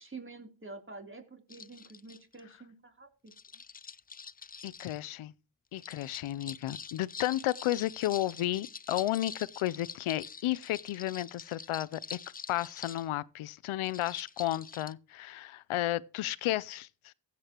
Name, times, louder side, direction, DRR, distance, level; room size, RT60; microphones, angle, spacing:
voice 1, 0.0-3.1, right 3 dB, 25° right, 3.4 m, -48 dB
sound 1, 1.5-2.4 3.3-5.0 5.7-13.1 13.8-14.9, left 5 dB, 20° left, 0.4 m, -46 dB
voice 2, 4.6-5.3 5.7-12.2 12.5-17.1, left 14 dB, 80° left, 0.6 m, -33 dB
15.0 x 8.4 x 2.9 m
cardioid pair, 50°, 48 cm